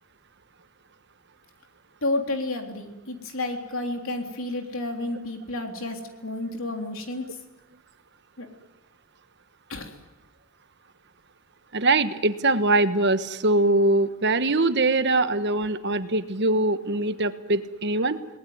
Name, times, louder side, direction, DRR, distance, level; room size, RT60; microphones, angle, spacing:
voice 1, 2.0-7.3 8.4-8.5 9.7-10.0, left 2 dB, 60° left, 4 dB, 3.6 m, -31 dB
voice 2, 11.7-18.2, right 2 dB, 50° right, 11 dB, 1.3 m, -22 dB
28.5 x 19.5 x 9.6 m, 1.0 s
head